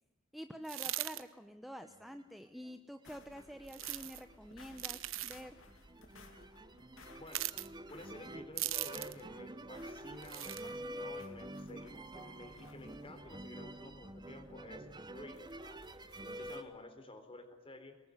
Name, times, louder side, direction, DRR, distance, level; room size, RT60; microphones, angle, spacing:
voice 1, 0.3-5.6, equal, ahead, 7 dB, 0.9 m, -48 dB
sound 1, 0.6-1.2 3.7-4.2 4.8-5.4 7.3-7.7 8.6-9.2 10.2-10.6, right 15 dB, 75° right, 1.1 m, -39 dB
sound 2, 1.9-2.7 3.1-16.6, right 1 dB, 20° right, 1.2 m, -48 dB
sound 3, 3.0-16.6, left 2 dB, 80° left, 3.2 m, -60 dB
voice 2, 7.2-7.5 7.9-15.8 16.2-18.0, left 1 dB, 30° left, 7 dB, 3.8 m, -52 dB
24.0 x 21.0 x 9.9 m, 1.1 s
head